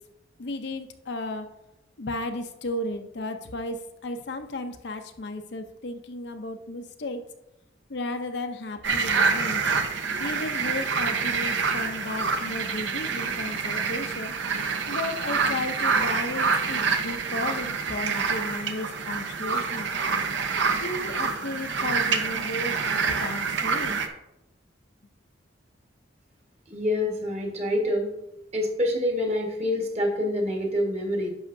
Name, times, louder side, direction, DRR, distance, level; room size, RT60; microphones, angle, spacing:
voice 1, 0.4-1.5 2.0-7.2 7.9-9.6 10.2-14.3 14.9-19.9 20.8-24.0, left 2 dB, 60° left, 6 dB, 0.6 m, -34 dB
sound 1, 8.8-24.1, right 5 dB, 75° right, 0.7 m, -27 dB
voice 2, 26.7-28.1 28.5-31.3, left 1 dB, 35° right, 2 dB, 1.4 m, -26 dB
10.5 x 6.0 x 2.6 m, 0.88 s
head